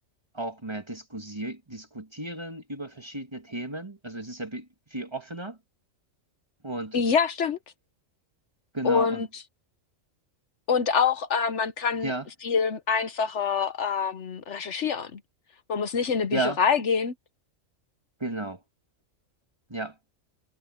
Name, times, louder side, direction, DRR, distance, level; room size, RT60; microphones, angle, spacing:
voice 1, 0.3-5.6 6.6-7.0 8.7-9.3 12.0-12.3 16.3-16.6 18.2-18.6 19.7-19.9, right 2 dB, 20° right, 1.8 m, -34 dB
voice 2, 6.9-7.6 8.8-9.4 10.7-12.1 12.4-15.2 15.7-17.1, left 6 dB, 65° left, 1.2 m, -25 dB
omnidirectional pair, 1.4 m